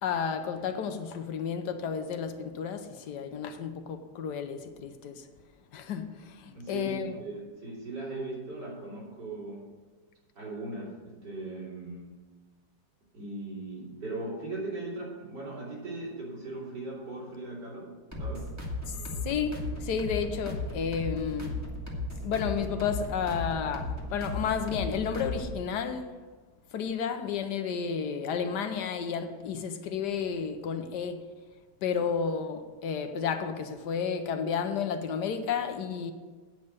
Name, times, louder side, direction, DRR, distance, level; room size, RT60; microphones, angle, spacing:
voice 1, 0.0-5.2 5.7-7.2 18.9-19.0 19.2-21.6 22.2-26.1 26.7-31.2 31.8-36.1, left 6 dB, 75° left, 1.3 m, -32 dB
voice 2, 6.5-9.7 10.4-12.2 13.1-18.5 30.4-30.5, right 2 dB, 75° right, 3.7 m, -39 dB
sound 1, 18.1-25.6, left 1 dB, 10° right, 1.5 m, -36 dB
9.0 x 5.4 x 8.0 m
omnidirectional pair, 1.9 m